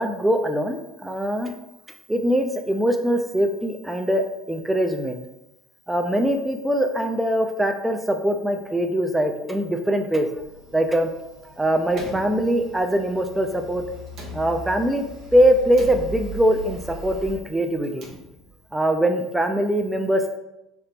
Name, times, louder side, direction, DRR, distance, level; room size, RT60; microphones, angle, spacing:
voice 1, 0.0-1.5 2.1-5.2 5.9-10.3 10.7-11.1 11.4-13.8 14.3-15.1 15.3-18.1 18.7-20.4, equal, 10° right, 5 dB, 0.4 m, -22 dB
sound 1, 10.3-17.3, right 1 dB, 80° right, 1.0 m, -40 dB
Slam, 11.9-13.0 14.1-15.0 15.7-16.6 17.7-18.7, right 3 dB, 55° right, 0.8 m, -41 dB
3.3 x 2.8 x 2.9 m, 0.92 s
figure-of-eight pair, 65°, 0 cm